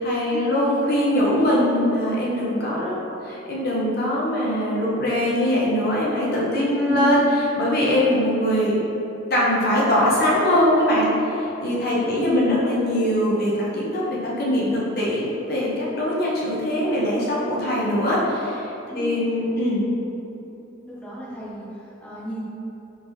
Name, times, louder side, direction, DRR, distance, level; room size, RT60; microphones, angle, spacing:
voice 1, 0.0-7.3 7.6-8.8 9.3-18.7 18.9-19.8, left 1 dB, 55° left, -5 dB, 0.7 m, -22 dB
voice 2, 6.6-7.4 11.8-12.6 18.9-19.2 20.8-22.4, equal, 5° left, -9 dB, 0.8 m, -32 dB
3.9 x 3.8 x 3.1 m, 3.0 s
head